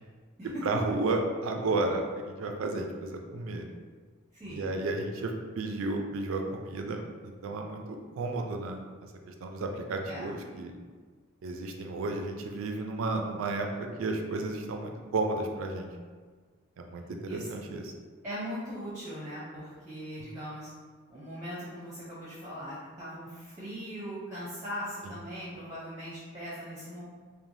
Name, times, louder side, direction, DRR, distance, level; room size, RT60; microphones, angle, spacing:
voice 1, 0.6-3.7 4.5-8.8 9.3-10.8 11.4-13.7 14.0-15.9 16.8-17.9 25.0-25.1, right 2 dB, 75° right, 3 dB, 0.4 m, -32 dB
voice 2, 4.3-4.7 10.1-10.3 17.3-17.6 18.2-20.7 21.1-27.0, equal, 15° right, -9 dB, 0.6 m, -40 dB
3.1 x 2.1 x 2.6 m, 1.5 s
head